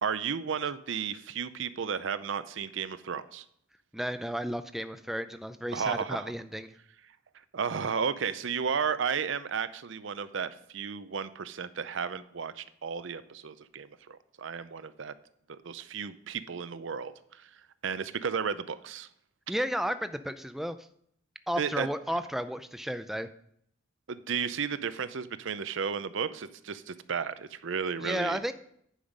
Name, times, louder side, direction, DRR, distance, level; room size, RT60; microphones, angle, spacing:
voice 1, 0.0-3.4 5.7-6.3 7.5-15.1 15.5-19.1 21.6-21.9 24.1-28.4, right 6 dB, 60° right, 14 dB, 0.5 m, -33 dB
voice 2, 3.9-6.8 19.5-20.9 21.5-23.3 28.0-28.5, equal, ahead, 10 dB, 0.4 m, -33 dB
10.0 x 5.7 x 5.1 m, 0.70 s
head